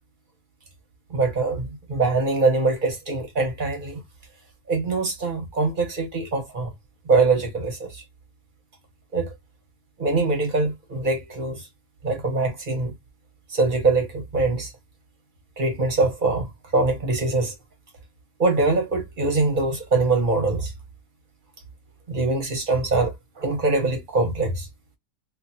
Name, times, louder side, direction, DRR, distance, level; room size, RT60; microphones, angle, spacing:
voice 1, 1.1-4.0 4.7-6.7 7.1-7.9 9.1-9.3 10.0-11.6 12.0-12.9 13.5-14.7 15.6-17.5 18.4-20.7 22.1-23.1 23.4-24.7, right 3 dB, 35° right, 1.0 m, -23 dB
3.2 x 2.4 x 2.7 m
omnidirectional pair, 1.9 m